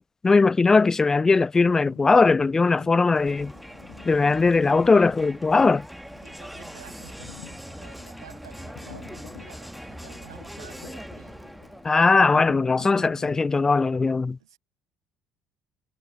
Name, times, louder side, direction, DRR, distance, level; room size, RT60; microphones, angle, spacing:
voice 1, 0.0-3.5 4.0-5.9 11.8-14.4, left 4 dB, 20° left, 0.5 m, -20 dB
sound 1, 1.6-13.8, left 20 dB, 65° left, 1.2 m, -48 dB
Crowd, 3.2-12.0, equal, ahead, 1.4 m, -41 dB
voice 2, 6.2-11.4 14.4-14.6, right 12 dB, 75° right, 6.6 m, -50 dB
figure-of-eight pair, 55°, 3 cm